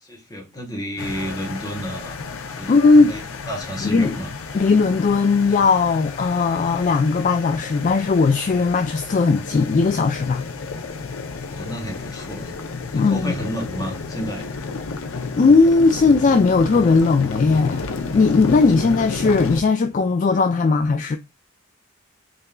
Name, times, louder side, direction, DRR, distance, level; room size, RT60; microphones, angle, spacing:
voice 1, 0.0-2.2 2.5-2.7 3.0-3.2 3.5-4.3 11.3-12.6 12.9-14.5, equal, 15° left, 1.2 m, -31 dB
sound 1, 1.0-19.6, left 4 dB, 80° left, 0.6 m, -32 dB
voice 2, 2.7-3.1 3.8-4.2 4.5-10.5 12.9-13.3 15.4-21.2, left 4 dB, 35° left, 0.3 m, -17 dB
4.2 x 3.7 x 2.2 m
head